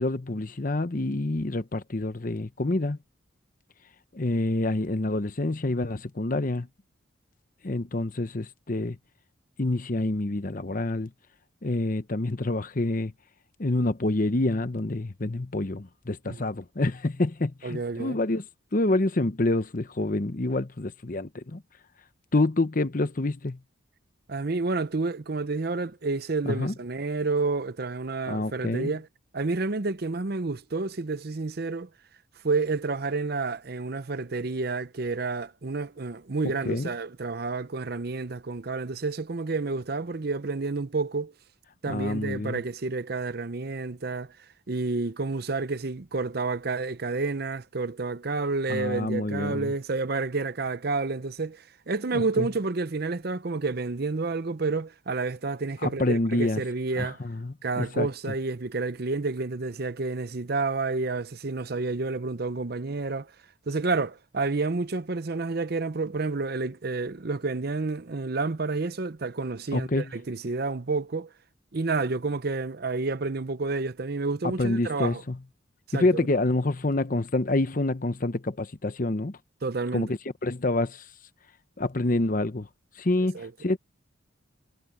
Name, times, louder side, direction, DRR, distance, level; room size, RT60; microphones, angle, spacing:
voice 1, 0.0-3.0 4.1-6.7 7.6-9.0 9.6-11.1 11.6-13.1 13.6-18.4 18.7-21.6 22.3-23.6 26.5-26.7 28.3-28.9 36.6-36.9 41.9-42.6 48.7-49.7 52.1-52.5 55.8-56.6 57.0-58.1 69.7-70.1 74.4-75.4 75.9-79.4 79.9-81.0 81.8-82.7 83.0-83.8, left 2 dB, 40° left, 0.9 m, -27 dB
voice 2, 17.6-18.2 24.3-29.1 29.3-31.9 32.4-41.3 41.8-44.3 44.7-57.2 57.6-63.3 63.7-71.3 71.7-75.2 75.9-76.3 79.6-80.1 83.3-83.5, right 3 dB, 50° right, 0.7 m, -30 dB
head